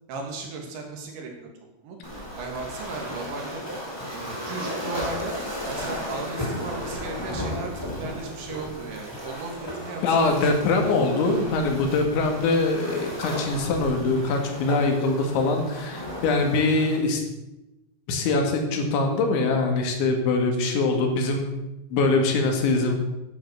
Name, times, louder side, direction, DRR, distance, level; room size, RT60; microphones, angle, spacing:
voice 1, 0.1-1.5 1.8-2.0 2.4-3.6 4.1-5.4 5.6-10.9 12.2-12.4 20.6-21.1, right 3 dB, 75° right, 2 dB, 4.7 m, -36 dB
Waves surf, 2.0-17.0, equal, 5° left, 2.6 m, -34 dB
voice 2, 10.0-17.2 18.1-21.5 21.9-22.9, left 3 dB, 80° left, 4 dB, 4.3 m, -23 dB
11.5 x 10.0 x 6.8 m, 0.98 s
omnidirectional pair, 5.2 m